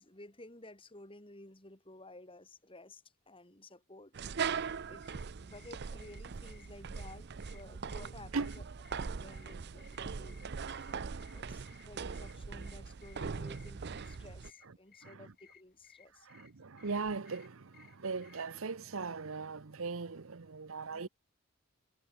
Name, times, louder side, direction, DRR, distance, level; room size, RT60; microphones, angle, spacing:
voice 1, 0.0-4.1 4.9-5.1 5.4-8.6 8.9-16.3 20.9-21.1, left 2 dB, 25° left, 4.3 m, -54 dB
sound 1, 4.1-14.5, right 5 dB, 50° right, 0.5 m, -41 dB
sound 2, 4.5-18.6, left 9 dB, 45° left, 7.8 m, -64 dB
voice 2, 15.0-15.3 16.2-21.1, right 4 dB, 70° right, 0.9 m, -39 dB
head